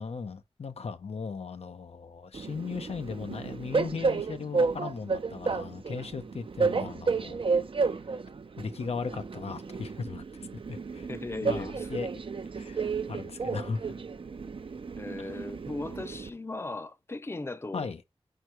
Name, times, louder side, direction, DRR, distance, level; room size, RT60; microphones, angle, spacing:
voice 1, 0.0-7.4 8.1-8.2 8.6-11.1 11.4-12.1 12.5-13.9 15.2-15.3 17.7-18.0, left 5 dB, 85° left, 0.6 m, -37 dB
Train, 2.3-16.3, right 4 dB, 60° right, 0.5 m, -32 dB
voice 2, 11.1-11.9 15.0-17.9, left 2 dB, 25° left, 0.5 m, -37 dB
4.6 x 4.6 x 4.5 m
wide cardioid pair, 75°, 10 cm